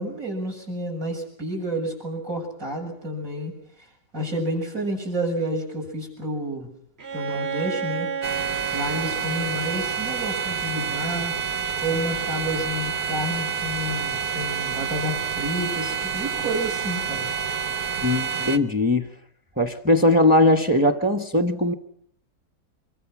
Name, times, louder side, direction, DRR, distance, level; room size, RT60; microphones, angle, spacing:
voice 1, 0.0-3.5 3.8-3.9 4.1-6.7 7.1-8.1 8.7-11.3 11.8-17.3 18.0-18.2, right 1 dB, 60° right, 7.6 m, -30 dB
Bowed string instrument, 7.0-10.8, right 6 dB, 45° right, 1.4 m, -33 dB
sound 1, 8.2-18.6, right 7 dB, 85° right, 1.7 m, -28 dB
voice 2, 18.0-19.1 19.6-21.7, left 1 dB, 5° right, 1.2 m, -20 dB
25.5 x 23.5 x 6.2 m
omnidirectional pair, 1.6 m